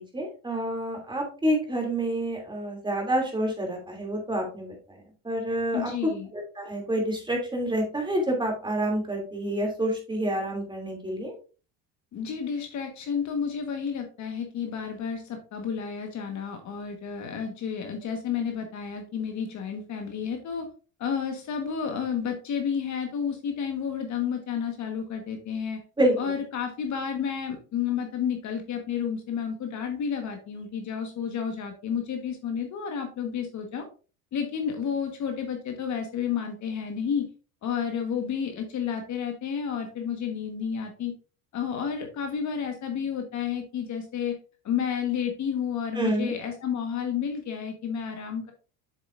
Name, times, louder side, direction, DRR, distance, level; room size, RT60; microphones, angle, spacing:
voice 1, 0.0-5.9 6.3-11.3 26.0-26.3 46.0-46.3, right 1 dB, 10° right, 1 dB, 2.7 m, -28 dB
voice 2, 5.7-6.3 12.1-20.7 21.0-25.8 26.2-33.9 34.3-37.3 37.6-41.1 41.5-44.3 44.6-48.5, left 7 dB, 45° left, 5 dB, 1.4 m, -31 dB
7.7 x 6.8 x 2.5 m, 0.35 s
supercardioid pair, 120°, 40 cm